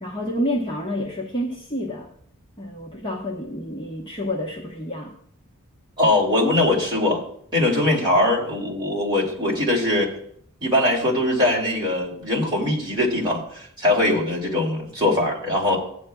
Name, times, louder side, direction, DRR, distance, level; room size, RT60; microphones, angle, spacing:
voice 1, 0.0-2.1 2.6-5.1, equal, 20° left, -2 dB, 1.0 m, -29 dB
voice 2, 6.0-7.2 7.5-10.1 10.6-15.8, left 1 dB, 20° right, -3 dB, 2.7 m, -21 dB
15.5 x 9.5 x 2.3 m, 0.65 s
head